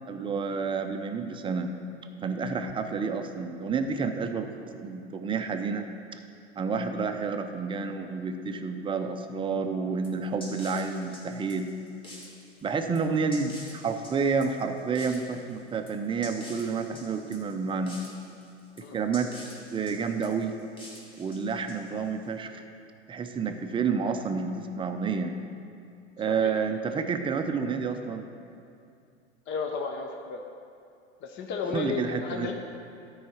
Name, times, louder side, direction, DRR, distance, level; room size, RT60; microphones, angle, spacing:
voice 1, 0.1-1.7 2.2-5.9 6.6-11.7 12.6-18.0 18.9-19.3 19.7-20.5 21.2-22.6 23.1-25.3 26.2-28.2 31.7-32.5, right 5 dB, 15° right, 6 dB, 0.5 m, -29 dB
sound 1, 10.0-22.2, left 1 dB, 15° left, 1.7 m, -48 dB
voice 2, 29.5-30.4 31.2-32.5, left 5 dB, 30° left, 3 dB, 0.7 m, -33 dB
12.0 x 4.8 x 5.7 m, 2.5 s
hypercardioid pair, 110°, 36 cm